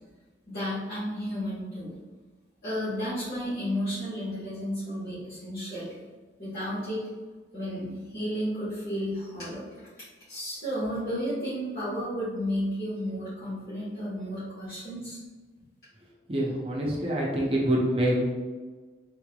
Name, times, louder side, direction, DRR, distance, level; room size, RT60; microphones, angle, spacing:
voice 1, 0.5-2.0 2.6-5.9 6.4-7.0 7.5-9.6 10.3-15.2, equal, 55° left, -12 dB, 1.3 m, -32 dB
voice 2, 16.3-18.2, right 1 dB, 30° right, -3 dB, 0.5 m, -26 dB
3.5 x 3.1 x 2.3 m, 1.4 s
head